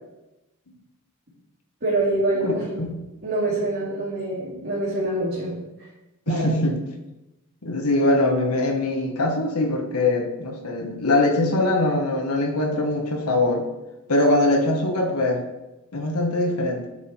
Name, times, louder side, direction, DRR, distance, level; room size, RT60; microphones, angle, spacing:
voice 1, 1.8-2.7 3.2-5.6 6.3-6.5, right 2 dB, 50° right, -11 dB, 2.7 m, -25 dB
voice 2, 2.4-2.9 6.3-6.8 7.6-13.6 14.1-15.4 15.9-16.9, left 2 dB, 85° left, 3 dB, 1.4 m, -22 dB
9.4 x 5.8 x 4.5 m, 1.0 s
head